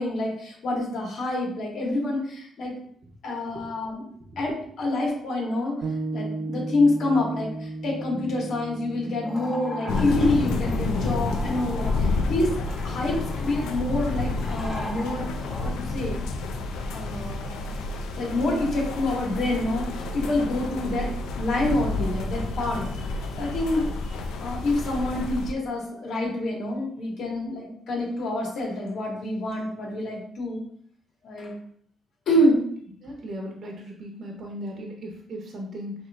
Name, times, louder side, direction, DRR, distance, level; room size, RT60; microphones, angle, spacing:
voice 1, 0.0-2.7 3.2-4.0 4.4-5.7 6.1-12.5 12.8-15.3 15.6-16.3 16.9-17.7 18.2-24.1 24.4-30.6 31.2-31.5 32.3-32.6, left 2 dB, 65° left, -2 dB, 1.9 m, -27 dB
sound 1, 5.8-15.5, right 2 dB, 80° right, 0.8 m, -37 dB
sound 2, 9.2-15.7, left 1 dB, 40° left, 1.7 m, -39 dB
sound 3, 9.9-25.5, left 2 dB, 90° left, 0.6 m, -30 dB
voice 2, 33.0-35.9, equal, 55° right, 0 dB, 0.9 m, -37 dB
6.4 x 3.1 x 2.5 m, 0.63 s
cardioid pair, 90°, 0 cm